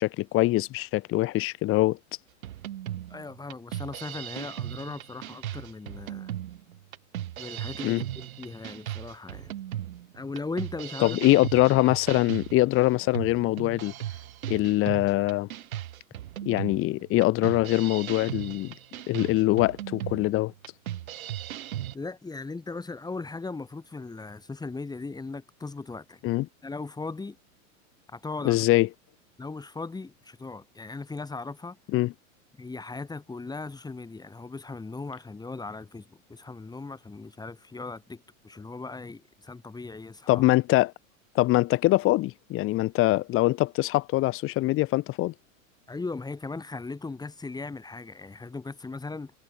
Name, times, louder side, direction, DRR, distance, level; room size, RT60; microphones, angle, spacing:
voice 1, 0.0-2.0 7.8-8.0 11.0-13.9 14.5-15.5 16.4-18.7 19.1-20.5 26.2-26.5 28.4-28.9 31.9-32.1 40.3-40.9 41.3-45.3, left 18 dB, 30° left, 1.1 m, -23 dB
sound 1, 2.4-21.9, right 12 dB, 80° right, 3.5 m, -37 dB
voice 2, 3.1-6.3 7.4-9.5 10.1-11.2 21.9-26.2 26.6-27.4 28.1-28.6 29.4-31.8 32.6-40.4 45.9-49.3, left 3 dB, 10° left, 4.5 m, -38 dB
supercardioid pair, 130°, 41 cm